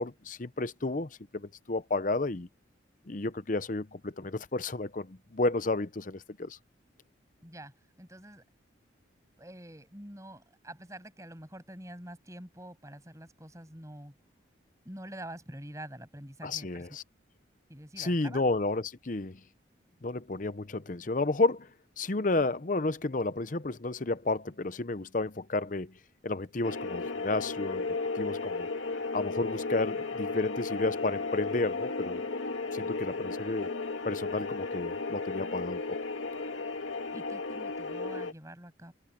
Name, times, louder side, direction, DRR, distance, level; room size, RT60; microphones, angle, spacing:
voice 1, 0.0-2.5 3.1-6.6 16.4-17.0 18.0-19.4 20.0-21.7 22.0-25.9 26.2-27.9 28.2-28.7 29.1-32.3 32.7-33.7 34.0-36.0, left 2 dB, 45° left, 0.7 m, -31 dB
voice 2, 7.4-7.7 8.0-8.4 9.4-14.1 14.8-17.0 17.7-18.4 37.1-38.9, right 1 dB, 15° right, 7.1 m, -46 dB
sound 1, 26.6-38.3, left 3 dB, 90° left, 2.1 m, -34 dB
open air
head